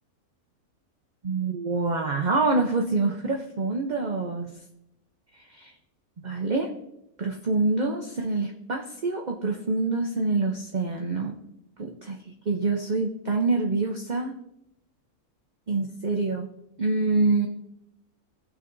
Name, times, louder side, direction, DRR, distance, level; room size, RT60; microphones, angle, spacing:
voice 1, 1.2-4.5 5.5-5.7 6.2-6.7 7.2-11.4 11.8-14.3 15.7-16.5 16.8-17.5, right 3 dB, 40° right, 3 dB, 0.6 m, -26 dB
18.0 x 6.0 x 2.6 m, 0.82 s
omnidirectional pair, 1.6 m